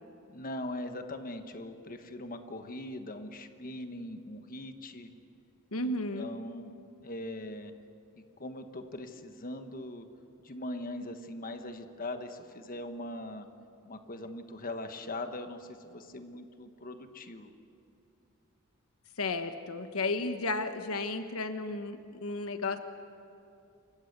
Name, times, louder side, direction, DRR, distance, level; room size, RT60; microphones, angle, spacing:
voice 1, 0.3-5.1 5.8-6.7 7.0-7.7 8.2-10.1 10.4-13.5 13.8-17.5, left 1 dB, 40° left, 7 dB, 1.3 m, -41 dB
voice 2, 5.7-6.3 19.2-22.8, left 2 dB, 80° left, 8 dB, 1.2 m, -33 dB
27.5 x 24.0 x 6.8 m, 2.6 s
head